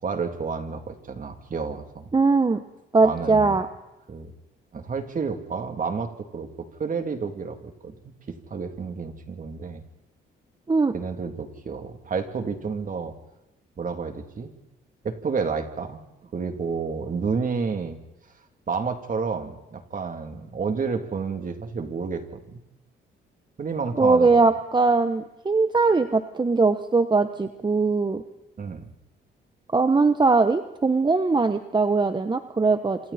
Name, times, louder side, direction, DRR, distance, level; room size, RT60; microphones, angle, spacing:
voice 1, 0.0-2.1 3.0-3.6 4.1-4.3 4.7-6.5 6.8-9.8 10.9-13.1 13.8-14.5 15.0-16.0 16.3-18.0 18.7-22.6 23.6-24.4 28.6-28.9, right 5 dB, 40° right, 5 dB, 3.0 m, -30 dB
voice 2, 2.1-2.6 2.9-3.7 10.7-10.9 24.0-28.2 29.7-33.0, right 3 dB, 20° right, 9 dB, 1.1 m, -20 dB
28.0 x 27.0 x 4.3 m, 0.95 s
cardioid pair, 90°, 20 cm